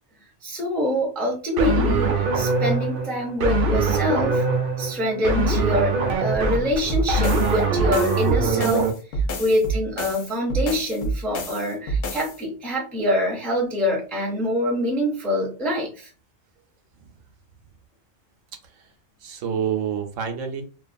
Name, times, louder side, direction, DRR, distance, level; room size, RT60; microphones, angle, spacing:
voice 1, 0.4-4.4 4.8-16.1, left 1 dB, ahead, -2 dB, 0.4 m, -25 dB
sound 1, 1.6-8.9, right 3 dB, 60° right, 0.6 m, -22 dB
sound 2, 6.9-12.4, right 2 dB, 60° left, 0.6 m, -28 dB
voice 2, 19.2-20.6, right 8 dB, 85° right, 5 dB, 1.0 m, -29 dB
2.5 x 2.2 x 2.5 m, 0.36 s
omnidirectional pair, 1.3 m